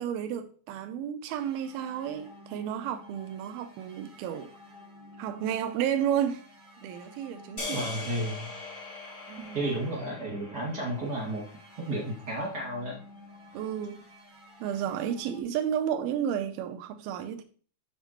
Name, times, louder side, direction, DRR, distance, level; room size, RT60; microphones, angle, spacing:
voice 1, 0.0-4.5 5.2-6.4 6.8-7.9 9.3-9.6 13.5-14.0 14.6-17.4, right 9 dB, 85° right, 2.5 m, -32 dB
sound 1, 1.4-15.4, left 2 dB, 60° right, 0.5 m, -52 dB
sound 2, 7.6-11.9, left 3 dB, 25° left, 1.6 m, -41 dB
voice 2, 7.7-8.5 9.5-11.4 11.8-13.0, right 1 dB, 35° right, 2.2 m, -32 dB
7.2 x 7.1 x 3.0 m
omnidirectional pair, 4.3 m